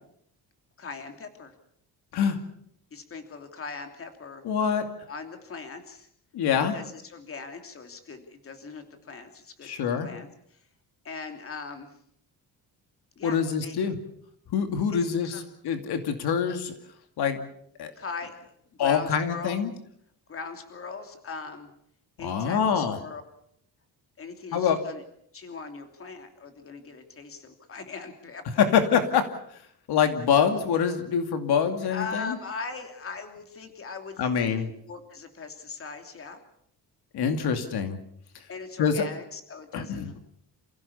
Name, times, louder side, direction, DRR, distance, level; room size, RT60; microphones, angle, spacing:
voice 1, 0.8-1.5 2.9-4.4 5.1-6.1 6.7-10.6 11.0-11.9 13.2-13.8 14.9-15.4 17.9-19.6 20.3-21.7 22.2-23.2 24.2-25.0 25.3-28.7 31.9-36.4 37.3-37.7 38.5-40.1, left 4 dB, 35° left, 6 dB, 3.0 m, -40 dB
voice 2, 4.4-4.8 6.3-6.8 9.6-10.1 13.2-13.9 14.5-16.7 17.2-17.4 17.8-17.9 18.8-19.7 22.2-23.0 24.5-24.8 28.6-29.2 29.9-32.4 34.2-34.7 37.1-38.0 38.8-39.0 39.7-40.1, left 7 dB, 80° left, 7 dB, 2.5 m, -25 dB
29.0 x 16.0 x 7.1 m, 0.70 s
cardioid pair, 165°, 38 cm